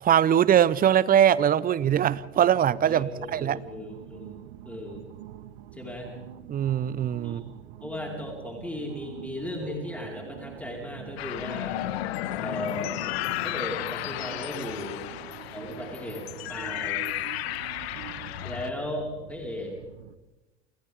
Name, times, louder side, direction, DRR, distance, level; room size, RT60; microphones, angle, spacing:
voice 1, 0.0-3.6 6.5-7.4, right 10 dB, 25° right, 20 dB, 0.8 m, -22 dB
sound 1, 1.8-20.1, right 11 dB, 65° right, 1.4 m, -45 dB
voice 2, 2.9-4.4 4.6-5.1 5.7-6.1 7.2-7.4 7.8-11.8 12.4-13.0 13.4-15.1 15.5-17.0 18.4-19.7, left 1 dB, 5° left, -1 dB, 4.8 m, -36 dB
sound 2, 11.2-18.7, left 15 dB, 65° left, 1.3 m, -33 dB
29.5 x 27.5 x 3.7 m, 1.0 s
hypercardioid pair, 90°, 34 cm